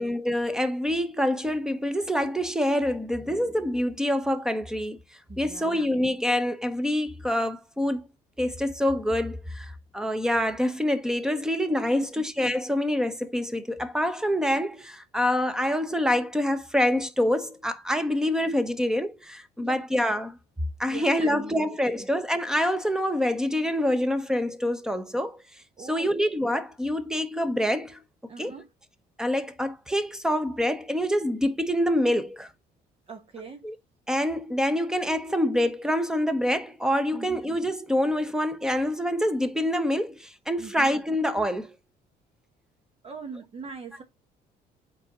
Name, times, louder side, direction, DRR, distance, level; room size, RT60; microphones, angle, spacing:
voice 1, 0.0-5.0 5.4-8.0 8.4-20.4 20.8-25.4 25.8-28.0 28.4-28.6 29.2-32.5 33.6-33.8 34.1-41.7, left 1 dB, 5° right, 0.9 m, -26 dB
voice 2, 5.3-5.9 12.2-12.3 19.6-19.8 20.9-22.1 25.8-26.1 28.3-28.7 33.1-33.6 37.1-37.4 40.6-40.9 43.0-44.0, right 4 dB, 35° right, 0.9 m, -41 dB
7.3 x 4.8 x 2.9 m
cardioid pair, 110°, 17 cm